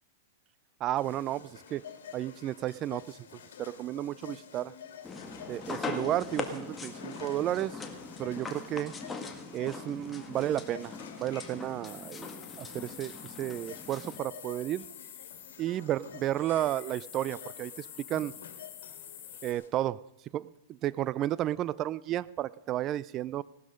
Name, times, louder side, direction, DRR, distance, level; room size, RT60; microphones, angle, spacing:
voice 1, 0.8-1.8 2.1-4.7 5.5-7.8 8.2-8.9 9.5-12.3 12.6-14.8 15.6-18.3 19.4-20.0 20.3-23.4, right 13 dB, 30° right, 21 dB, 0.4 m, -32 dB
sound 1, 0.9-19.7, left 8 dB, 80° left, 2.7 m, -50 dB
sound 2, 5.0-14.2, left 4 dB, 10° left, 1.8 m, -41 dB
sound 3, 11.8-19.5, left 10 dB, 35° left, 3.0 m, -48 dB
18.0 x 12.5 x 5.3 m, 0.91 s
hypercardioid pair, 140°, 0 cm